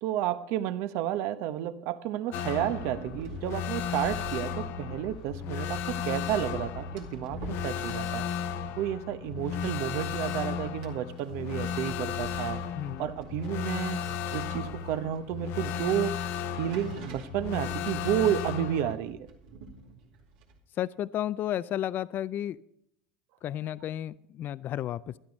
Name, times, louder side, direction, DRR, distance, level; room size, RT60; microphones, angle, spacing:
voice 1, 0.0-8.2 8.8-12.6 13.0-14.0 14.3-16.2 16.5-19.3, right 11 dB, 65° right, 12 dB, 0.9 m, -31 dB
sound 1, 2.3-19.0, left 7 dB, 60° left, 0.7 m, -35 dB
sound 2, 2.5-20.6, right 3 dB, 85° right, 2.5 m, -48 dB
voice 2, 12.8-13.1 20.7-22.6 23.4-25.2, left 12 dB, 45° left, 18 dB, 0.4 m, -32 dB
12.5 x 11.5 x 5.2 m, 0.76 s
supercardioid pair, 110°, 5 cm